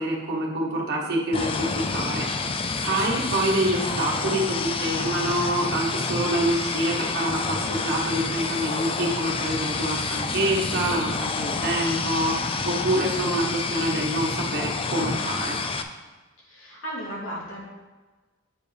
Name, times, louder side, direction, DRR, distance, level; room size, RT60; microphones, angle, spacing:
voice 1, 0.0-2.5 2.8-15.6, right 1 dB, 50° right, -3 dB, 1.4 m, -26 dB
sound 1, 1.3-15.8, left 4 dB, 25° left, 0.4 m, -28 dB
voice 2, 16.4-17.6, equal, 70° left, -6 dB, 2.7 m, -35 dB
8.3 x 4.7 x 5.0 m, 1.3 s
head